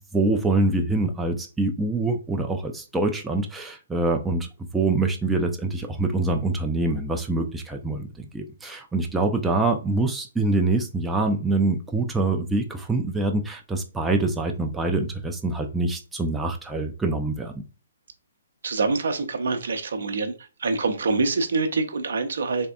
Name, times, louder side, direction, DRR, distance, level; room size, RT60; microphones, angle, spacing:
voice 1, 0.0-17.5, right 2 dB, 5° right, 3 dB, 0.4 m, -25 dB
voice 2, 18.6-20.3 20.6-22.7, right 3 dB, 60° right, 8 dB, 0.6 m, -25 dB
3.5 x 3.2 x 2.2 m, 0.34 s
figure-of-eight pair, 130°, 0 cm